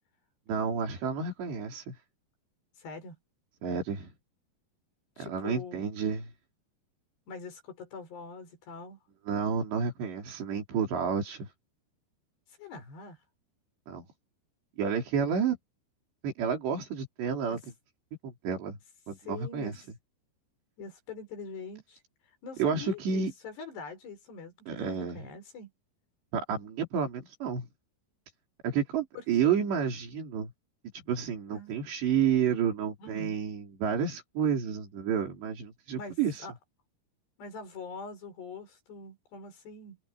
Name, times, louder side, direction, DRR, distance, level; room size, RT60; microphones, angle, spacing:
voice 1, 0.5-2.0 3.6-4.1 5.2-6.3 9.3-11.5 13.9-14.0 14.8-15.6 16.2-17.6 18.2-18.8 19.1-19.8 22.6-23.3 24.7-25.2 26.3-27.7 28.6-30.5 31.1-36.5, right 7 dB, 75° right, 6.6 m, -30 dB
voice 2, 2.8-3.2 5.2-5.8 7.3-9.0 12.6-13.2 17.5-17.6 19.2-19.7 20.8-22.0 22.4-25.7 29.2-29.3 31.5-31.7 33.0-33.4 35.9-36.5 37.4-40.0, left 4 dB, 70° left, 8.0 m, -43 dB
omnidirectional pair, 5.0 m